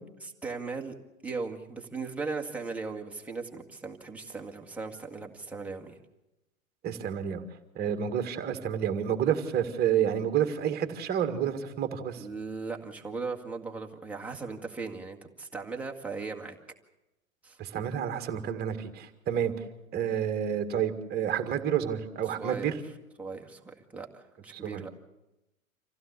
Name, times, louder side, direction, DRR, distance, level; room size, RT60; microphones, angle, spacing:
voice 1, 0.2-1.0 1.2-6.0 12.2-16.6 17.4-17.6 22.3-22.8 23.2-24.9, right 4 dB, 5° right, 0 dB, 1.9 m, -38 dB
voice 2, 6.8-7.4 7.8-12.2 17.6-19.5 19.9-22.7 24.6-24.8, right 9 dB, 25° right, 8 dB, 2.0 m, -29 dB
26.5 x 16.0 x 8.1 m, 0.97 s
figure-of-eight pair, 100°, 41 cm